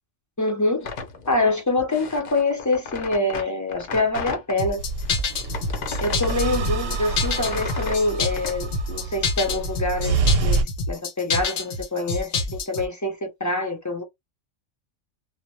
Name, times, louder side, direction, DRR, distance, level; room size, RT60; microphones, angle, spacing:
voice 1, 0.4-0.9 1.3-4.8 6.0-14.0, left 2 dB, 25° left, 0.4 m, -25 dB
sound 1, 0.8-4.6 5.0-8.6, left 5 dB, 55° left, 0.7 m, -35 dB
sound 2, 4.6-12.9, left 4 dB, 80° left, 1.0 m, -27 dB
sound 3, 4.8-10.6, right 3 dB, 85° right, 1.0 m, -27 dB
2.2 x 2.0 x 2.9 m
omnidirectional pair, 1.3 m